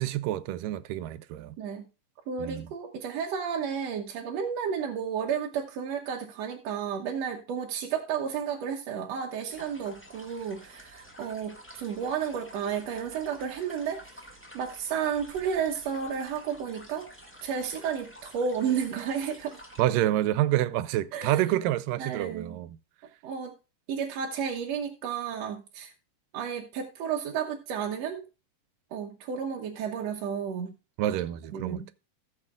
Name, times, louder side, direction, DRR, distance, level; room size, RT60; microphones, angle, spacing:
voice 1, 0.0-1.5 2.4-2.6 19.8-22.8 31.0-32.0, right 14 dB, 90° right, 2.3 m, -28 dB
voice 2, 2.3-14.2 14.5-17.1 17.4-19.6 21.1-21.5 22.0-22.6 23.2-23.5 23.9-25.9 26.3-28.2 28.9-30.7 31.5-31.9, right 7 dB, 65° right, 1.9 m, -32 dB
sound 1, 9.5-19.8, equal, 5° left, 1.1 m, -50 dB
18.0 x 6.3 x 2.3 m
omnidirectional pair, 3.8 m